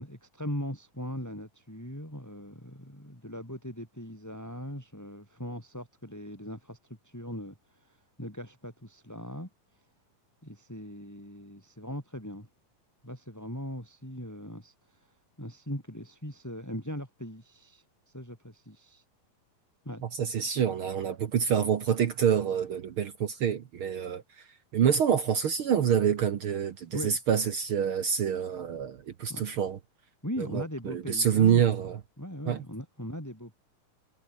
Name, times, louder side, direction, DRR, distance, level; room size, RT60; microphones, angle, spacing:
voice 1, 0.0-9.5 10.4-12.5 13.0-19.0 19.8-20.0 26.9-27.2 29.3-29.5 30.2-31.7 32.2-33.6, equal, 5° left, 7.8 m, -40 dB
voice 2, 20.1-24.5 24.7-29.8 30.4-32.0 32.5-32.6, right 8 dB, 70° right, 1.2 m, -27 dB
omnidirectional pair, 4.2 m